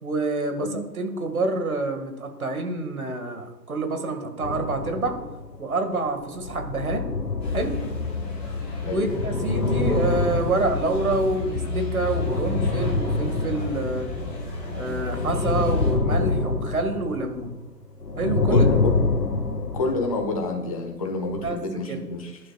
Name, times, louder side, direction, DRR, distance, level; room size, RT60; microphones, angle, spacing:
voice 1, 0.0-5.2 5.6-7.1 7.5-7.7 8.8-14.1 14.7-17.5 18.2-18.7 21.4-21.6 21.9-22.0, right 2 dB, 55° right, 5 dB, 2.3 m, -27 dB
sound 1, 4.4-5.7 6.2-14.6 14.9-17.7 18.0-20.4 21.2-21.5, left 3 dB, 70° left, 1.8 m, -27 dB
sound 2, 7.4-15.9, left 3 dB, 5° left, 1.1 m, -32 dB
voice 2, 18.5-18.9 19.7-22.4, left 3 dB, 20° left, 3 dB, 1.4 m, -28 dB
20.0 x 11.5 x 2.5 m, 1.1 s
figure-of-eight pair, 150°, 50 cm